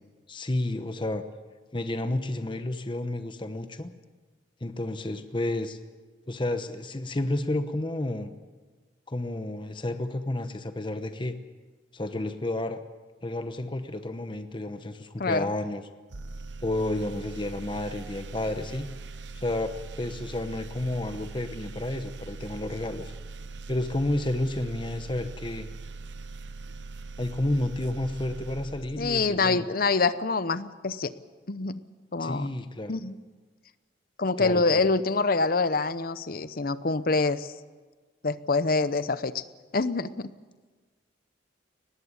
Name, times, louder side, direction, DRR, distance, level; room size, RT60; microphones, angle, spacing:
voice 1, 0.3-1.2 1.7-3.9 4.6-5.8 6.3-8.3 9.1-11.3 11.9-12.8 13.2-15.8 16.6-18.9 19.3-23.1 23.7-25.7 27.2-29.6 32.2-33.0 34.4-34.8, left 1 dB, 25° left, 9 dB, 0.9 m, -31 dB
voice 2, 15.2-15.5 29.0-31.1 31.5-31.8 32.1-32.5 32.9-33.1 34.2-37.5 38.2-39.4 39.7-40.3, left 3 dB, 50° left, 14 dB, 0.8 m, -26 dB
sound 1, 16.1-29.5, right 3 dB, 75° right, 0.9 m, -41 dB
19.5 x 15.5 x 9.7 m, 1.4 s
head